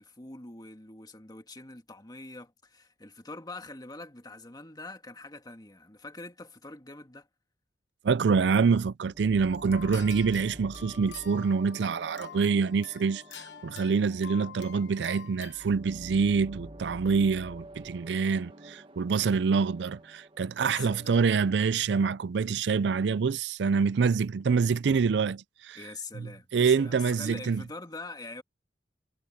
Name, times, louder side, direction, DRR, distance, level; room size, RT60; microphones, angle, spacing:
voice 1, 0.0-7.3 20.6-21.2 25.8-28.4, left 2 dB, 25° left, 2.0 m, -44 dB
voice 2, 8.0-25.8 26.2-27.6, right 5 dB, 75° right, 0.4 m, -26 dB
sound 1, 9.1-21.6, right 1 dB, 30° right, 1.7 m, -49 dB
sound 2, 9.4-15.7, left 8 dB, 85° left, 1.1 m, -48 dB
head